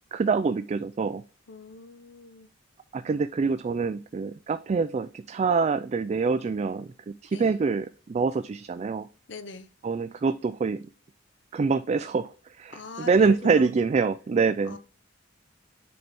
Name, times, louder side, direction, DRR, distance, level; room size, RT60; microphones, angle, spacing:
voice 1, 0.1-1.2 2.9-6.9 7.2-9.1 9.8-10.8 11.5-12.3 12.6-14.8, right 4 dB, 35° right, 0.3 m, -25 dB
voice 2, 1.5-2.5 7.3-7.5 9.3-9.7 12.7-13.7 14.6-14.8, left 3 dB, 65° left, 0.8 m, -40 dB
7.7 x 4.0 x 3.5 m
head